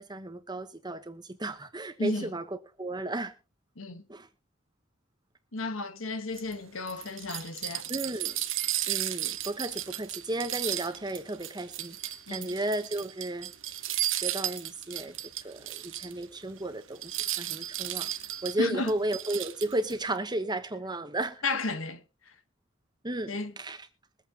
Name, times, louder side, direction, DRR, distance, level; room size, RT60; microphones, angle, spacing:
voice 1, 0.0-2.5 2.8-3.3 4.1-4.3 7.9-8.4 8.9-12.0 12.3-13.5 14.1-15.2 15.4-18.1 18.4-21.4 23.0-23.9, right 1 dB, 20° right, 1.1 m, -34 dB
voice 2, 2.0-2.3 3.8-4.0 5.5-7.9 12.3-12.5 18.6-19.0 21.4-22.0 23.3-23.5, left 3 dB, 80° left, 1.4 m, -33 dB
sound 1, 6.3-16.2 16.6-16.7 17.0-19.9, right 13 dB, 65° right, 1.1 m, -34 dB
22.5 x 8.6 x 2.9 m
head